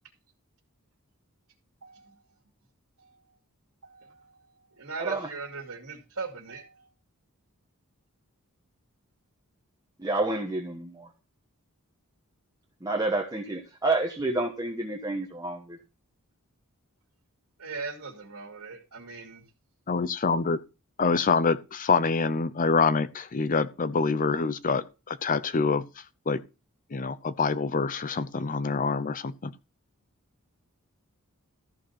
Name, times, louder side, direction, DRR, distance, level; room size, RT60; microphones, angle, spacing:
voice 1, 1.8-2.2 3.0-3.2 3.8-4.5 4.8-6.9 17.6-19.4, right 4 dB, 80° right, 2.5 m, -39 dB
voice 2, 5.0-5.3 10.0-11.1 12.8-15.8, right 2 dB, 15° right, 1.2 m, -29 dB
voice 3, 19.9-20.6 21.0-25.8 26.3-26.4 26.9-29.5, left 4 dB, 35° left, 0.6 m, -26 dB
14.0 x 5.2 x 5.8 m
head